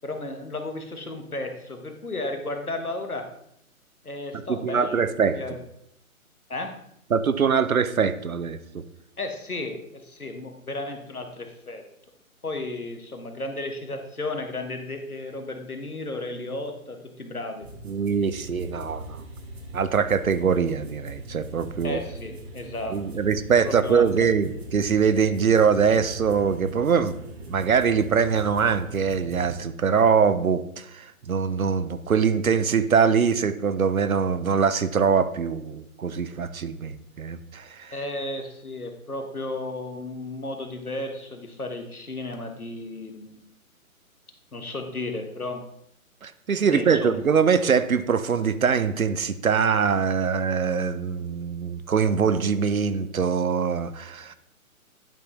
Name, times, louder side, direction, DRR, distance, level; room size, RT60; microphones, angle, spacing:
voice 1, 0.0-3.3 4.0-5.0 5.3-5.6 6.5-6.8 9.2-11.8 12.4-17.7 21.8-23.0 23.6-24.3 37.9-43.5 44.5-45.6 46.7-47.2, left 2 dB, 85° left, 5 dB, 1.3 m, -33 dB
voice 2, 4.5-5.4 7.1-8.8 17.8-19.2 19.7-22.0 22.9-27.1 27.5-37.9 46.2-54.4, right 6 dB, 70° right, 12 dB, 0.7 m, -23 dB
sound 1, 17.6-29.6, right 1 dB, 45° right, 1.3 m, -41 dB
10.5 x 5.9 x 3.1 m, 0.74 s
figure-of-eight pair, 135°, 43 cm